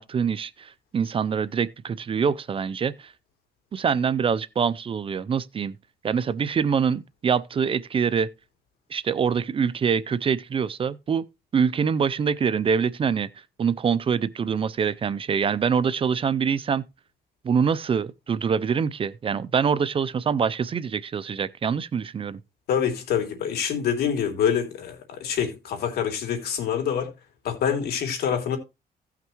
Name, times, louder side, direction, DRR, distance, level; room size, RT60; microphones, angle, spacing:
voice 1, 0.0-3.1 3.7-5.8 6.0-8.3 8.9-11.2 11.5-13.3 13.6-16.8 17.4-22.4, right 6 dB, 35° right, 0.6 m, -25 dB
voice 2, 22.7-27.1 27.4-28.6, left 8 dB, 80° left, 3.0 m, -26 dB
16.5 x 5.8 x 3.0 m
cardioid pair, 125°, 16 cm